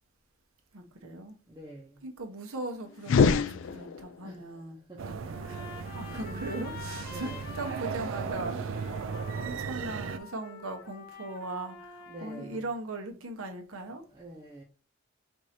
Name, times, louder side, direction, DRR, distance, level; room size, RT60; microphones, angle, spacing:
voice 1, 0.7-1.4 2.0-4.8 5.4-5.7 5.9-8.7 9.4-14.1, right 2 dB, 85° right, 1.0 m, -39 dB
voice 2, 1.5-2.0 4.2-5.2 6.1-6.4 7.1-7.5 12.1-12.6 14.1-14.6, right 1 dB, 15° right, 0.8 m, -47 dB
sound 1, 3.0-4.3, left 5 dB, 65° left, 0.3 m, -25 dB
sound 2, 5.0-10.2, right 5 dB, 65° right, 0.4 m, -36 dB
Trumpet, 5.3-12.6, left 5 dB, 45° left, 1.0 m, -47 dB
4.6 x 2.6 x 4.3 m
head